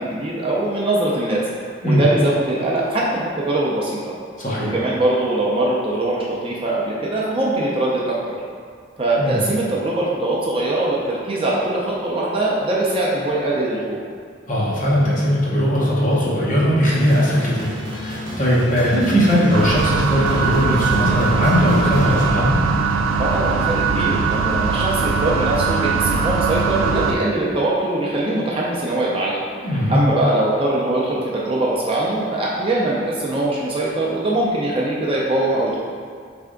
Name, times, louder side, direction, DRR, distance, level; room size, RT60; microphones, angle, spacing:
voice 1, 0.0-1.4 1.8-4.2 4.6-8.4 9.0-14.0 23.2-35.8, right 2 dB, 25° right, -5 dB, 0.5 m, -22 dB
voice 2, 4.4-4.8 9.2-9.4 14.5-22.6 29.6-30.0, equal, 40° left, -6 dB, 0.9 m, -19 dB
sound 1, 16.9-22.3, equal, 60° right, 0.8 m, -31 dB
sound 2, 19.5-27.2, right 5 dB, 85° right, 0.3 m, -21 dB
3.7 x 3.3 x 3.7 m, 2.1 s
head